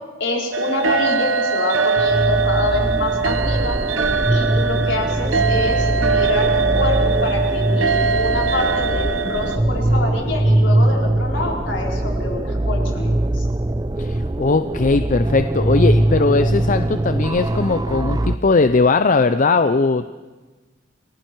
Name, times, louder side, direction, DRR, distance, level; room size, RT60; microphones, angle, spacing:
voice 1, 0.2-3.8 4.3-13.5, left 2 dB, 65° left, -1 dB, 4.6 m, -26 dB
sound 1, 0.5-9.6, right 5 dB, 80° right, 1.1 m, -21 dB
sound 2, 2.0-18.4, right 1 dB, 20° right, 0.6 m, -21 dB
voice 2, 14.0-20.1, left 3 dB, 40° left, 10 dB, 0.6 m, -19 dB
29.0 x 19.5 x 4.7 m, 1.3 s
head